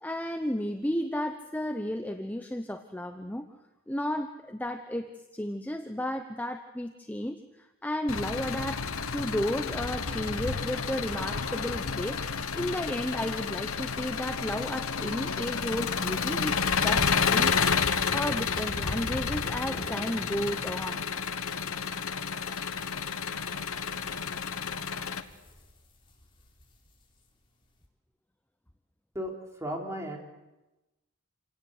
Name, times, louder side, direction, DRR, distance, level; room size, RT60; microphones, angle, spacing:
voice 1, 0.0-3.5 3.9-8.8 9.1-21.0, left 1 dB, 5° left, 6 dB, 0.8 m, -33 dB
Engine, 8.1-25.2, left 6 dB, 75° left, 1.3 m, -30 dB
sound 1, 18.5-18.7 19.3-27.8, equal, 25° left, 4.0 m, -50 dB
voice 2, 29.1-30.2, equal, 15° right, 0 dB, 3.7 m, -35 dB
27.5 x 18.0 x 8.1 m, 1.0 s
head